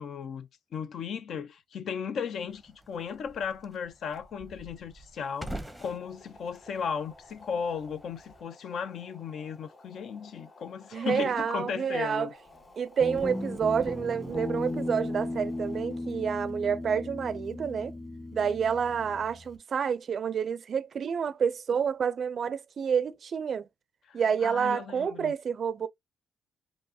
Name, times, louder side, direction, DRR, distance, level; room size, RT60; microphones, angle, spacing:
voice 1, 0.0-5.5 5.8-12.3 24.1-25.3, left 6 dB, 65° left, 0.5 m, -36 dB
sound 1, 2.5-8.4, right 1 dB, 5° right, 0.7 m, -46 dB
Boiling, 5.4-16.4, left 2 dB, 40° left, 1.5 m, -56 dB
voice 2, 10.9-12.3 12.8-17.9 18.3-23.7 24.1-25.9, right 7 dB, 50° right, 0.4 m, -29 dB
Guitar, 13.0-19.6, left 2 dB, 20° left, 1.4 m, -36 dB
4.6 x 2.7 x 2.7 m
cardioid pair, 90°, 0 cm